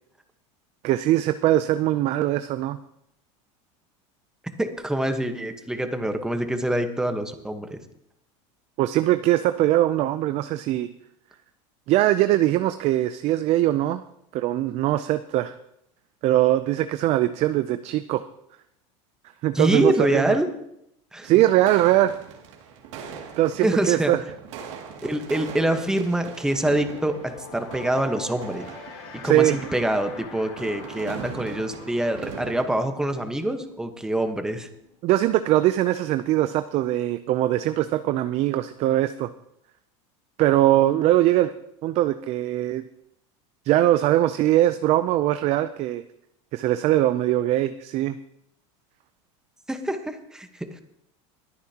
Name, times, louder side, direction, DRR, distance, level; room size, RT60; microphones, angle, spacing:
voice 1, 0.8-2.8 8.8-10.9 11.9-14.0 14.3-15.5 16.2-18.3 19.4-20.3 21.2-22.1 23.4-24.2 29.2-29.6 35.0-39.3 40.4-41.5 41.8-42.8 43.7-46.0 46.5-48.2, right 14 dB, 45° right, 11 dB, 0.5 m, -21 dB
voice 2, 4.6-7.8 19.5-20.5 21.1-21.4 23.6-24.1 25.0-28.7 29.2-34.7 49.7-50.8, right 1 dB, 5° right, 6 dB, 1.2 m, -25 dB
sound 1, 21.2-32.8, right 7 dB, 80° right, 2.4 m, -40 dB
sound 2, 24.5-24.7 25.0-35.5, left 5 dB, 75° left, 5.7 m, -45 dB
21.0 x 9.6 x 2.9 m, 0.78 s
supercardioid pair, 130°, 16 cm